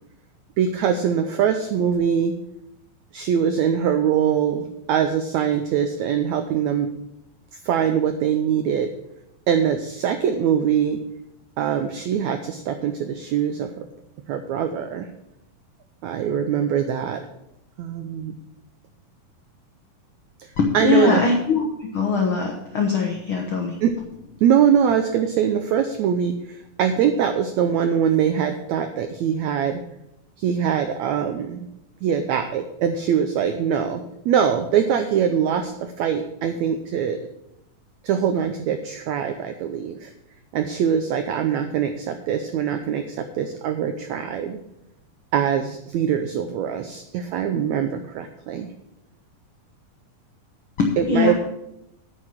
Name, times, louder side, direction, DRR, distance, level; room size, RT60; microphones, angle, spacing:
voice 1, 0.6-2.4 3.1-6.9 7.6-8.9 9.5-11.0 11.6-13.9 14.3-15.1 16.0-17.2 17.8-18.3 20.7-21.2 23.8-23.9 24.4-29.8 30.4-31.7 32.0-37.2 38.0-40.1 40.5-44.6 45.3-48.7 51.0-51.3, right 8 dB, 90° right, 7 dB, 1.6 m, -23 dB
voice 2, 20.6-23.8 50.8-51.3, left 4 dB, 75° left, 1 dB, 1.2 m, -21 dB
9.4 x 6.4 x 7.4 m, 0.83 s
omnidirectional pair, 4.1 m